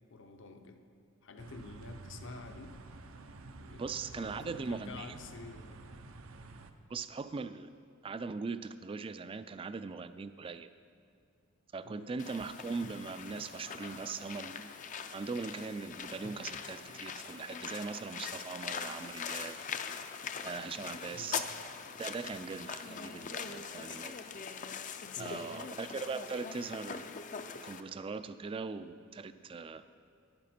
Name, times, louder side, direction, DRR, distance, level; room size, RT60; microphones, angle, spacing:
voice 1, 0.1-0.8 1.2-2.7 3.4-3.8 4.1-5.8 11.8-12.1 14.2-14.3 21.1-21.4 25.1-25.5, left 3 dB, 60° left, 6 dB, 0.8 m, -49 dB
sound 1, 1.4-6.7, right 3 dB, 80° right, 0.6 m, -50 dB
voice 2, 3.8-5.2 6.9-7.7 8.0-10.7 11.7-14.7 15.1-19.6 20.4-21.5 22.0-24.1 25.2-27.1 27.6-29.8, right 4 dB, 25° right, 12 dB, 0.3 m, -40 dB
sound 2, 12.2-27.8, left 6 dB, 40° left, 0.4 m, -42 dB
12.0 x 10.0 x 4.3 m, 2.4 s
head